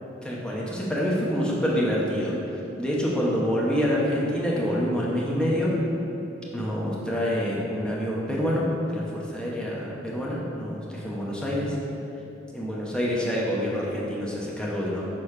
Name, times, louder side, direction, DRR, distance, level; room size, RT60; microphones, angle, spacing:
voice 1, 0.2-2.3 2.8-5.7 6.5-9.0 9.3-11.7 12.5-15.0, equal, 5° left, -5 dB, 1.0 m, -26 dB
6.5 x 4.2 x 4.8 m, 3.0 s
head